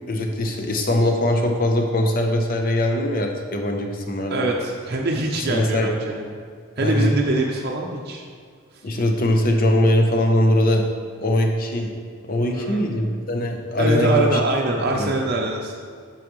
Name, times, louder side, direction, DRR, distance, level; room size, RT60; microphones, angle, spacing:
voice 1, 0.1-4.5 5.4-5.9 6.8-7.1 8.8-10.9 11.2-11.9 12.2-14.4 14.9-15.2, left 1 dB, 45° left, 2 dB, 0.8 m, -21 dB
voice 2, 4.3-6.2 6.8-8.2 12.5-12.8 13.8-15.8, right 2 dB, 50° right, -1 dB, 0.6 m, -23 dB
8.7 x 6.2 x 3.1 m, 2.1 s
head